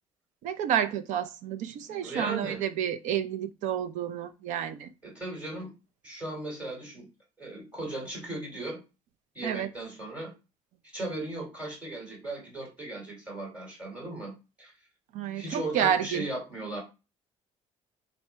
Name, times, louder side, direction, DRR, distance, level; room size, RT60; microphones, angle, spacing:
voice 1, 0.4-4.9 9.4-9.7 15.1-16.2, right 9 dB, 80° right, 0.6 m, -30 dB
voice 2, 2.0-2.6 5.0-5.7 6.0-7.1 7.4-8.8 9.3-10.3 10.9-14.3 14.6-14.7 15.3-16.8, right 2 dB, 10° right, 2.8 m, -37 dB
4.1 x 2.7 x 4.6 m
cardioid pair, 115°, 12 cm